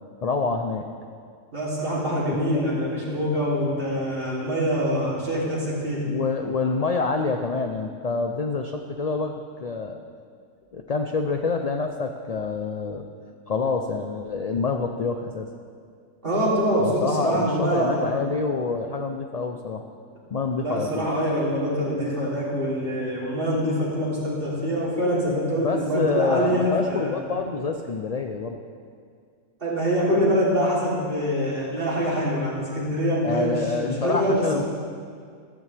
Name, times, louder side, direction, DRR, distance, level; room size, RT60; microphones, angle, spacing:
voice 1, 0.2-0.8 2.5-2.7 6.0-9.3 9.6-10.0 10.7-13.1 13.5-15.5 16.8-19.8 20.3-21.1 25.6-28.6 33.2-34.6, left 4 dB, 55° left, 4 dB, 0.4 m, -27 dB
voice 2, 1.5-6.0 16.2-18.2 20.6-27.1 29.6-34.6, equal, 40° right, -7 dB, 3.5 m, -25 dB
14.0 x 13.5 x 3.4 m, 2.1 s
omnidirectional pair, 1.4 m